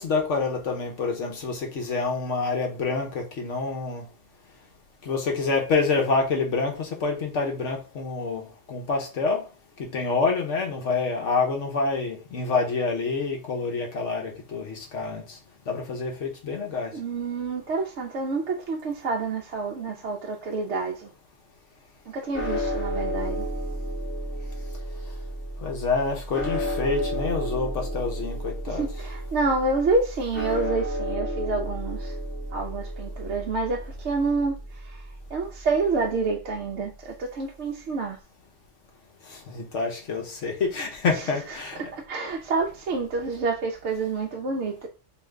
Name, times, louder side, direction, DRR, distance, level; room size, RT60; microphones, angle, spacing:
voice 1, 0.0-4.1 5.0-9.5 9.8-15.4 15.7-16.9 25.6-28.9 39.3-41.9, left 4 dB, 70° left, 1.3 m, -27 dB
voice 2, 16.9-21.1 22.1-23.5 28.7-32.2 32.5-35.0 35.3-38.2 41.1-41.3 41.8-44.9, right 3 dB, 65° right, 0.9 m, -28 dB
sound 1, 22.3-36.6, equal, 10° left, 0.8 m, -32 dB
3.2 x 3.1 x 3.6 m
omnidirectional pair, 1.3 m